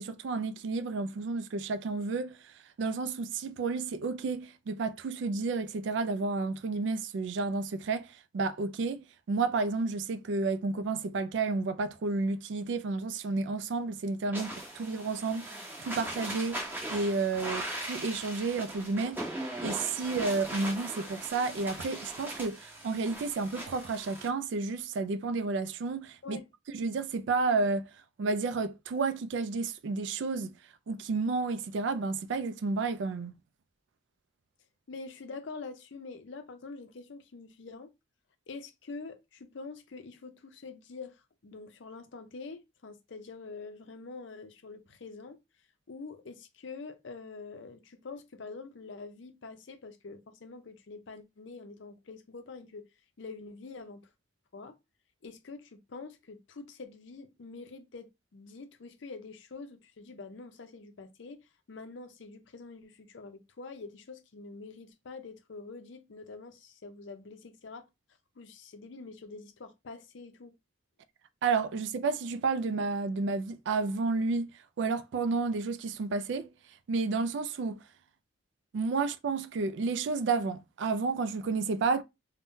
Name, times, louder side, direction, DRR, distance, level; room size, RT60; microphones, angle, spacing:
voice 1, 0.0-2.4 2.8-16.6 16.9-26.4 26.7-27.9 28.2-30.6 30.9-33.3 71.4-74.5 74.8-76.5 76.9-77.8 78.7-82.0, right 4 dB, 60° right, 0.3 m, -31 dB
sound 1, 14.3-24.3, right 1 dB, 10° right, 0.7 m, -39 dB
voice 2, 34.9-37.9 38.5-45.4 45.9-52.9 53.2-54.0 54.5-54.8 55.2-67.9 68.4-70.5, left 4 dB, 60° left, 0.5 m, -45 dB
2.6 x 2.1 x 3.5 m
head